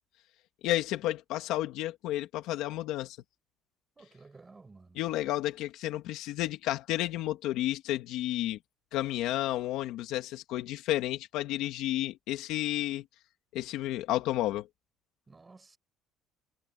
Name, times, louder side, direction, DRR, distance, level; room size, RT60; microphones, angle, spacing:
voice 1, 0.6-3.2 5.0-8.6 8.9-13.0 13.5-14.7, left 15 dB, 70° left, 2.5 m, -31 dB
voice 2, 4.0-5.0 15.3-15.8, right 3 dB, 15° right, 6.3 m, -54 dB
cardioid pair, 170°, 0 cm